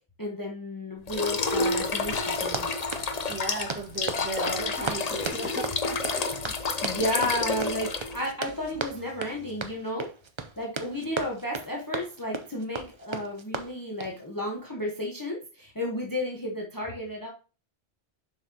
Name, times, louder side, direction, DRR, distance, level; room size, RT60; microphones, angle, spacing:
voice 1, 0.2-2.7 6.8-10.1 10.6-17.3, left 1 dB, 20° left, 0 dB, 1.1 m, -32 dB
sound 1, 1.1-8.3, left 4 dB, 45° left, 0.7 m, -29 dB
sound 2, 1.4-9.7, right 1 dB, 65° right, 3.8 m, -52 dB
Run, 2.4-14.2, right 4 dB, 35° right, 0.6 m, -37 dB
voice 2, 3.3-6.5 6.9-7.0, right 2 dB, 10° right, -1 dB, 1.8 m, -36 dB
7.1 x 5.7 x 2.8 m, 0.34 s
omnidirectional pair, 1.1 m